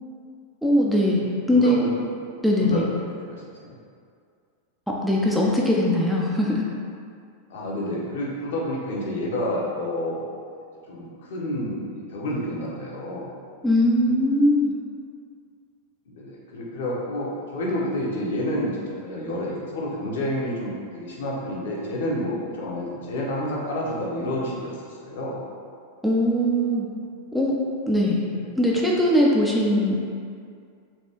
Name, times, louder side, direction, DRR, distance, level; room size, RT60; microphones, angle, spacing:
voice 1, 0.6-1.2 1.5-1.8 2.4-2.9 5.0-6.7 13.6-14.7 26.0-26.9 27.3-27.6 27.9-28.2 28.6-30.0, left 1 dB, ahead, -4 dB, 0.3 m, -20 dB
voice 2, 1.1-1.9 2.6-3.8 7.5-10.3 10.9-13.3 16.1-25.4 28.2-28.3, left 1 dB, 60° left, -4 dB, 0.6 m, -29 dB
3.2 x 2.5 x 2.8 m, 2.3 s
figure-of-eight pair, 90°, 0 cm